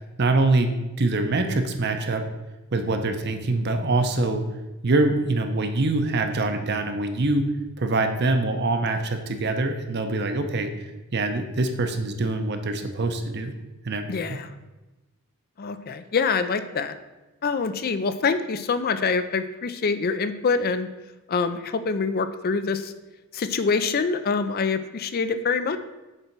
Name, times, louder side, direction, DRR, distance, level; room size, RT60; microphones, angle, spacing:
voice 1, 0.2-2.3 2.7-4.5 4.8-10.7 11.1-13.5 13.8-14.4, right 2 dB, 50° right, 6 dB, 0.7 m, -24 dB
voice 2, 14.1-14.5 15.6-17.0 17.4-20.9 21.3-22.9 23.3-25.8, left 5 dB, 45° left, 11 dB, 0.4 m, -25 dB
6.7 x 4.3 x 5.9 m, 1.1 s
head